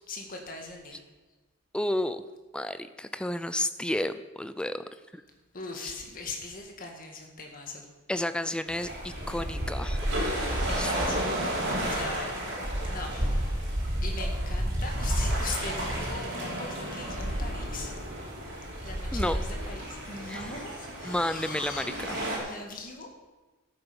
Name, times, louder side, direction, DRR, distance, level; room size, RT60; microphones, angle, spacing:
voice 1, 0.1-1.0 5.5-7.9 10.1-11.3 11.8-12.4 12.8-13.4 14.0-17.9 18.8-23.1, left 3 dB, 40° left, 2 dB, 2.0 m, -40 dB
voice 2, 1.7-2.2 2.5-4.8 5.1-5.2 5.8-5.9 8.1-10.0 10.8-11.0 19.1-19.4 20.3-20.5 21.0-22.2, left 1 dB, 5° left, 11 dB, 0.4 m, -31 dB
sound 1, 8.7-22.4, equal, 55° right, 4.5 m, -31 dB
11.5 x 9.0 x 7.0 m, 1.2 s
head